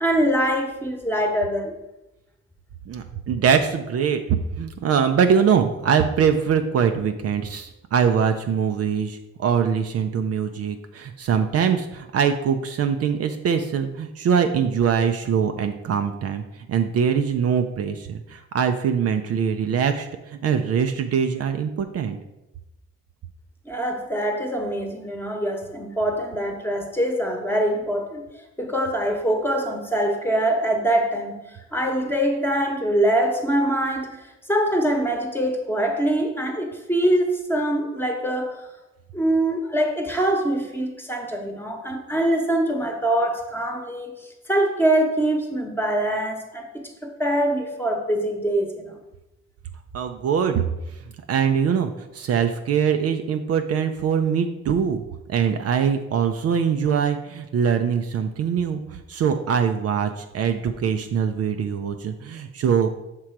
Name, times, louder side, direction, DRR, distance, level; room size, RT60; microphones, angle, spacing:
voice 1, 0.0-1.7 23.6-38.6 39.1-44.1 44.5-48.9, right 1 dB, 5° left, 2 dB, 1.0 m, -24 dB
voice 2, 2.9-4.2 4.6-16.4 16.7-22.2 49.9-50.6 51.3-55.0 55.3-62.9, right 7 dB, 55° right, 6 dB, 0.5 m, -23 dB
6.0 x 3.8 x 4.5 m, 0.95 s
cardioid pair, 90°, 30 cm